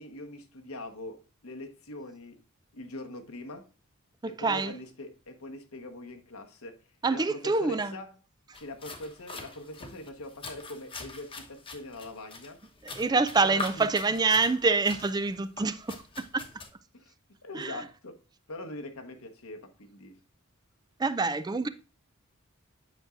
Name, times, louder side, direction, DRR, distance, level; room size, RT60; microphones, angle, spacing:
voice 1, 0.0-2.4 2.7-3.7 4.2-6.8 7.1-8.1 8.5-12.6 13.4-13.9 16.9-17.1 17.4-18.2 18.5-20.2, left 1 dB, 85° left, 1.3 m, -42 dB
voice 2, 4.2-4.7 7.0-7.9 12.8-16.0 16.3-16.4 17.5-17.8 21.0-21.7, right 3 dB, 20° right, 0.4 m, -26 dB
sound 1, 8.5-16.7, left 2 dB, 25° left, 1.0 m, -43 dB
8.8 x 6.1 x 2.5 m
head